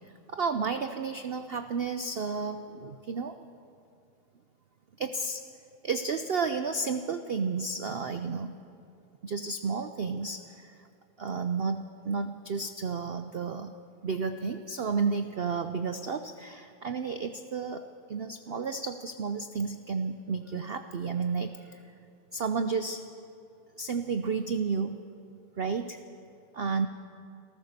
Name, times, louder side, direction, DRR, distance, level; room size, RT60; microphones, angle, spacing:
voice 1, 0.3-3.5 5.0-5.4 5.8-8.5 9.2-10.7 11.2-13.7 14.0-21.8 22.3-23.0 23.8-25.0 25.6-26.0 26.5-26.9, right 5 dB, 80° right, 9 dB, 0.5 m, -32 dB
26.5 x 14.5 x 6.7 m, 2.5 s
omnidirectional pair, 1.9 m